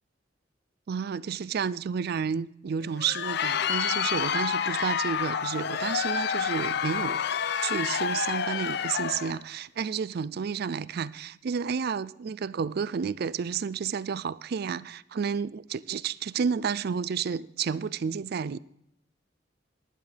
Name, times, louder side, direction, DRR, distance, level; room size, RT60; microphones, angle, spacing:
voice 1, 0.9-7.2 7.6-18.6, right 6 dB, 55° right, 0.4 m, -31 dB
Crowd, 2.8-9.4, left 7 dB, 60° left, 0.5 m, -29 dB
19.0 x 10.5 x 3.4 m
head